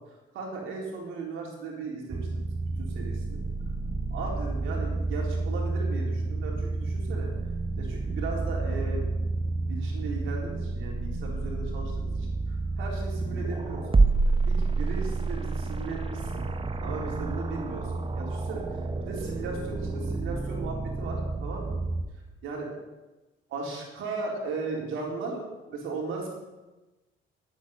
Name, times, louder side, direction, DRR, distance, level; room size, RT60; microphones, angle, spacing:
voice 1, 0.3-2.4 2.8-3.4 4.1-7.3 7.8-9.0 9.3-13.8 14.4-16.5 16.8-21.8 22.4-22.7 23.5-25.4 25.7-26.3, right 3 dB, 90° right, -1 dB, 3.9 m, -37 dB
sound 1, 2.1-22.0, right 3 dB, 25° right, 1.1 m, -29 dB
11.0 x 8.6 x 8.1 m, 1.1 s
cardioid pair, 90°, 20 cm